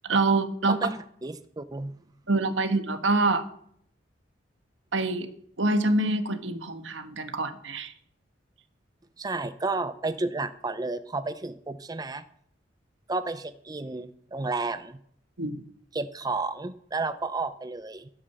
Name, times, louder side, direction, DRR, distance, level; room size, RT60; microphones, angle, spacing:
voice 1, 0.0-0.8 2.3-3.4 4.9-5.3 5.6-7.9 15.4-15.6, right 2 dB, 80° right, 9 dB, 1.3 m, -25 dB
voice 2, 0.7-1.9 9.2-12.2 13.1-15.0 15.9-18.1, right 3 dB, 20° right, 11 dB, 0.5 m, -32 dB
12.0 x 8.8 x 6.8 m, 0.66 s
head